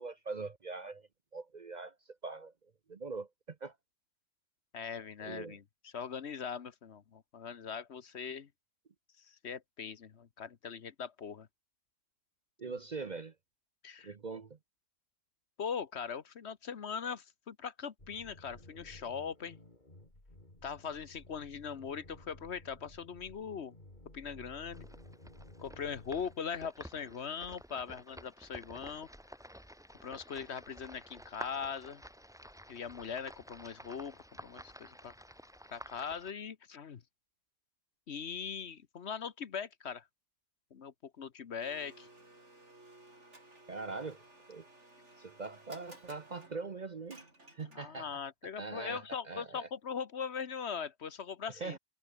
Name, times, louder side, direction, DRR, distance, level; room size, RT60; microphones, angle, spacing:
voice 1, 0.0-2.5 2.9-3.8 5.2-5.6 12.6-13.3 14.0-14.6 43.7-44.2 44.5-44.7 45.2-47.2 47.5-48.1 48.6-49.7 51.6-51.8, right 4 dB, 40° right, 0.8 m, -42 dB
voice 2, 4.7-8.5 9.2-11.5 13.8-14.1 15.6-19.6 20.6-23.7 24.1-24.9 25.6-29.1 30.0-32.0 32.7-35.1 35.7-37.0 38.1-40.0 40.7-42.1 47.7-51.8, left 6 dB, 60° left, 1.3 m, -41 dB
sound 1, 18.0-26.8, left 1 dB, 35° left, 5.4 m, -55 dB
sound 2, 24.7-36.3, equal, ahead, 6.0 m, -52 dB
Domestic sounds home sounds, 41.6-48.1, right 2 dB, 65° right, 6.4 m, -57 dB
omnidirectional pair, 1.3 m